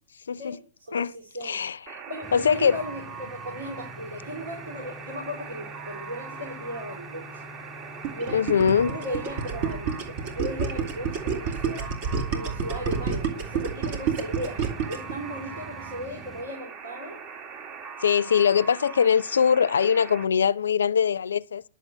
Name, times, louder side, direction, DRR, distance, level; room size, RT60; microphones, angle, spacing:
voice 1, 0.3-0.6 0.9-1.1 1.4-2.0 2.3-2.8 8.3-8.9 18.0-21.6, left 7 dB, 80° left, 0.4 m, -22 dB
voice 2, 0.9-1.6 2.1-7.5 8.1-8.4 8.8-12.0 12.3-14.6 14.9-17.2, equal, 80° right, 3.5 m, -37 dB
Alarm, 1.9-20.2, right 6 dB, 40° right, 1.6 m, -41 dB
sound 1, 2.2-16.4, equal, 15° right, 3.1 m, -46 dB
Gurgling, 8.0-15.1, right 6 dB, 55° right, 2.5 m, -28 dB
11.0 x 6.8 x 7.4 m
hypercardioid pair, 110°, 0 cm